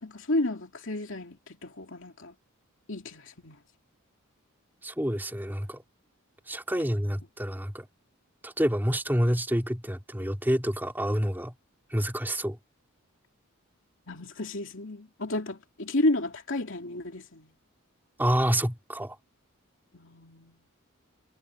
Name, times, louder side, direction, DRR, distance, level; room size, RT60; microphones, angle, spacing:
voice 1, 0.0-2.3 2.9-3.6 6.7-7.3 14.1-17.5 19.9-20.6, left 2 dB, 60° left, 2.8 m, -32 dB
voice 2, 4.8-5.8 6.5-7.9 8.4-11.5 11.9-12.6 18.2-19.2, equal, 10° right, 2.9 m, -28 dB
head